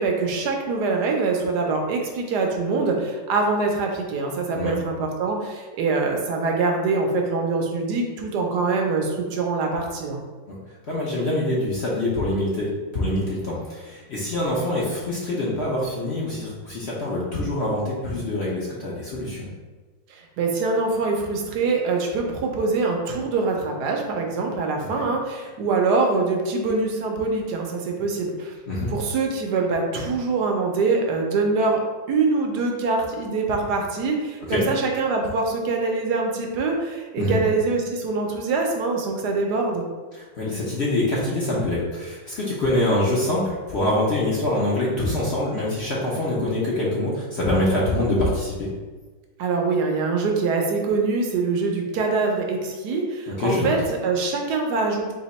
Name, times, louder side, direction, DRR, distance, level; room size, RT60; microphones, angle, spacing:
voice 1, 0.0-10.2 20.1-28.5 28.9-31.8 32.1-39.9 49.4-55.1, right 3 dB, 70° right, 2 dB, 1.2 m, -24 dB
voice 2, 10.9-12.7 12.9-19.5 25.0-25.1 28.7-28.9 34.5-34.6 37.2-37.4 40.1-48.7 53.3-53.7, left 1 dB, 50° left, -6 dB, 0.8 m, -25 dB
3.4 x 2.9 x 4.1 m, 1.3 s
omnidirectional pair, 2.0 m